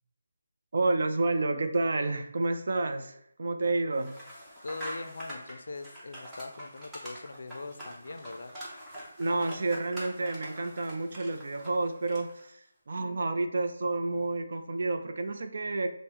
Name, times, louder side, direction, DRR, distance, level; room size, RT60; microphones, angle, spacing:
voice 1, 0.7-4.1 9.2-15.9, right 2 dB, 55° right, 6 dB, 0.4 m, -30 dB
sound 1, 4.0-12.5, equal, 5° right, 0.7 m, -44 dB
voice 2, 4.6-8.5, left 3 dB, 65° left, 8 dB, 0.4 m, -41 dB
5.3 x 2.0 x 2.9 m, 0.74 s
figure-of-eight pair, 170°, 0 cm